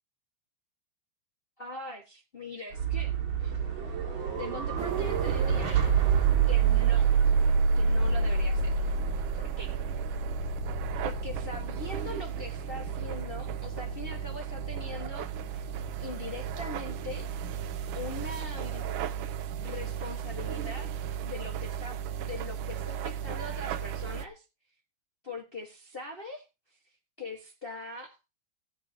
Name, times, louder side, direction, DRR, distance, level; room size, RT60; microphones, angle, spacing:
voice 1, 1.6-3.1 3.4-3.5 4.4-5.9 6.5-7.1 7.7-8.8 9.4-9.8 11.0-15.7 16.0-17.3 17.9-18.9 19.6-24.4 25.2-28.2, left 3 dB, 55° left, 0.6 m, -42 dB
sound 1, 2.7-18.6, right 5 dB, 45° right, 2.4 m, -29 dB
sound 2, 4.8-24.3, right 9 dB, 80° right, 2.3 m, -36 dB
18.5 x 8.3 x 2.9 m
omnidirectional pair, 3.7 m